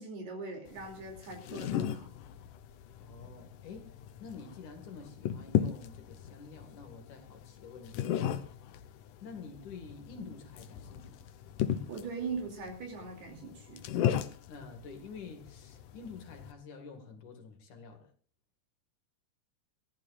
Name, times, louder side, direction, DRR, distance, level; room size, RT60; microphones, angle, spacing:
voice 1, 0.0-2.1 11.9-13.8, right 4 dB, 65° right, 4.8 m, -40 dB
sound 1, 0.7-16.5, left 10 dB, 85° left, 1.8 m, -36 dB
voice 2, 3.0-3.9 4.2-8.4 9.2-11.2 14.5-18.1, left 5 dB, 50° left, 2.9 m, -48 dB
26.0 x 15.5 x 2.5 m
omnidirectional pair, 5.1 m